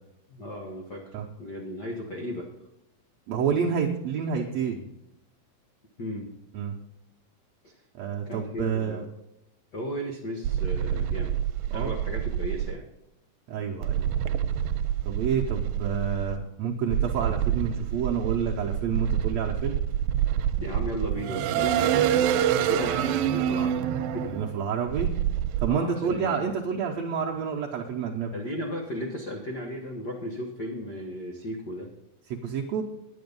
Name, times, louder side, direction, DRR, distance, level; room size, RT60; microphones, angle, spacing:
voice 1, 0.3-2.5 6.0-6.3 7.6-7.7 8.3-9.1 9.7-11.4 11.7-12.9 20.6-24.3 25.7-26.5 28.3-31.9, equal, 75° left, 0 dB, 0.9 m, -35 dB
voice 2, 3.3-4.8 6.5-6.8 8.0-9.0 11.7-12.0 13.5-14.1 15.0-19.8 24.2-25.1 25.6-28.3 32.4-32.8, right 6 dB, 70° right, -1 dB, 1.7 m, -29 dB
sound 1, 10.4-12.7 13.8-16.4 16.9-25.7, right 10 dB, 85° right, 2.4 m, -27 dB
10.5 x 9.7 x 5.4 m, 0.88 s
omnidirectional pair, 4.1 m